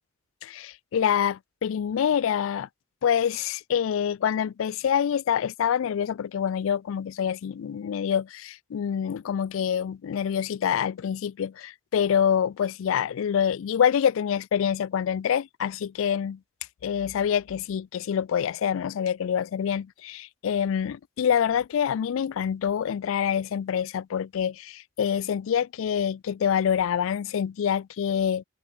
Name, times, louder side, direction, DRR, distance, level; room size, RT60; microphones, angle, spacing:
voice 1, 0.4-2.7 3.0-16.4 16.8-28.4, left 8 dB, 70° left, 0.3 m, -26 dB
head